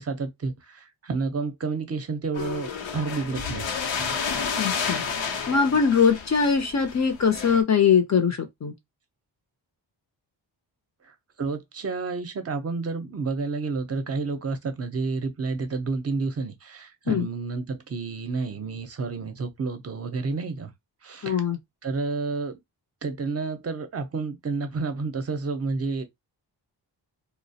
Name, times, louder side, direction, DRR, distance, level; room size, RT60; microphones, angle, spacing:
voice 1, 0.0-4.2 11.0-20.7 21.0-21.4 21.8-22.6 23.0-26.0, right 4 dB, 35° right, 0.6 m, -30 dB
sound 1, 2.3-7.6, left 6 dB, 90° left, 0.7 m, -31 dB
voice 2, 4.6-5.0 5.5-8.7 17.1-17.3 21.2-21.6, left 6 dB, 40° left, 0.5 m, -22 dB
2.3 x 2.0 x 2.6 m
cardioid pair, 75°, 44 cm